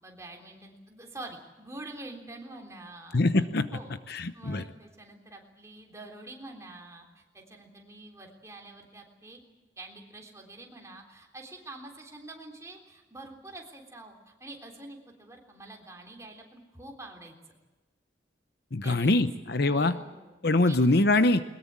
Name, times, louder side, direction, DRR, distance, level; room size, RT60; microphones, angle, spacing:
voice 1, 0.0-3.2 3.7-9.4 9.8-17.3 18.8-19.3 19.6-20.4 20.7-20.8, right 2 dB, 15° right, 1 dB, 3.5 m, -46 dB
voice 2, 3.1-3.7 4.1-4.6 18.7-20.0 20.4-21.4, left 2 dB, 55° left, 11 dB, 0.9 m, -23 dB
22.0 x 21.0 x 8.8 m, 1.1 s
head